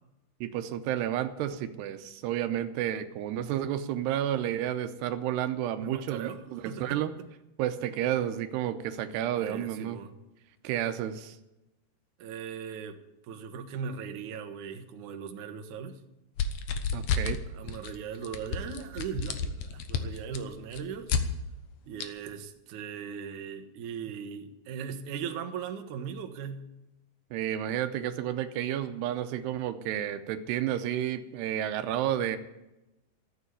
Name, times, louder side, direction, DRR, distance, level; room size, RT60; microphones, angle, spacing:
voice 1, 0.4-7.1 7.6-10.0 10.6-11.4 16.9-17.4 27.3-32.4, right 11 dB, 90° right, 9 dB, 2.9 m, -31 dB
voice 2, 5.8-7.0 9.3-10.1 12.2-13.0 13.2-16.0 17.5-21.1 21.9-26.7, right 7 dB, 65° right, 5 dB, 2.2 m, -39 dB
sound 1, 16.4-17.4 17.7-18.0 18.2-21.2 22.0-22.1, left 6 dB, 85° left, 1.5 m, -30 dB
14.0 x 8.1 x 9.5 m, 0.95 s
omnidirectional pair, 4.9 m